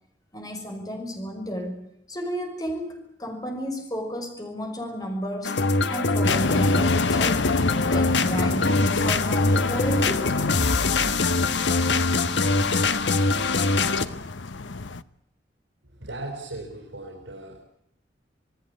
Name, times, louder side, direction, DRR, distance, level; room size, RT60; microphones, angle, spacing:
voice 1, 0.3-1.8 2.1-5.6 5.9-7.4 7.8-10.3, equal, 20° left, 4 dB, 6.0 m, -32 dB
sound 1, 5.4-14.1, left 3 dB, 70° left, 1.5 m, -23 dB
sound 2, 6.2-15.0, left 3 dB, 90° left, 0.9 m, -29 dB
voice 2, 15.8-17.6, right 2 dB, 90° right, 1 dB, 5.6 m, -37 dB
28.0 x 19.0 x 8.5 m, 0.77 s
head